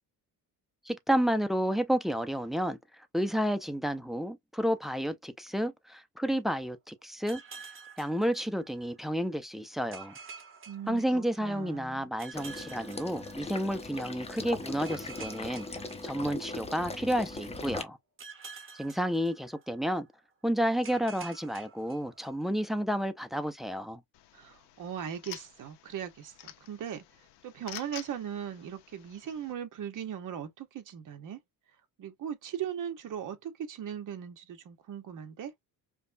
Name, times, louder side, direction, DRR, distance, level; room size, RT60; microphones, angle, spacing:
voice 1, 0.9-7.4 8.0-10.1 10.9-15.7 16.0-18.0 18.7-20.1 20.4-24.0, equal, ahead, 0.3 m, -31 dB
sound 1, 7.3-9.0 9.9-11.7 12.2-13.9 14.8-16.8 18.2-20.0 20.8-22.6, right 5 dB, 30° right, 1.2 m, -49 dB
voice 2, 10.7-12.1 24.3-27.0 27.4-31.4 32.0-35.5, right 9 dB, 50° right, 1.0 m, -39 dB
Water / Liquid, 12.3-17.8, left 3 dB, 15° left, 0.7 m, -39 dB
sound 2, 24.1-29.5, left 12 dB, 80° left, 0.9 m, -49 dB
5.2 x 2.2 x 2.5 m
cardioid pair, 145°, 41 cm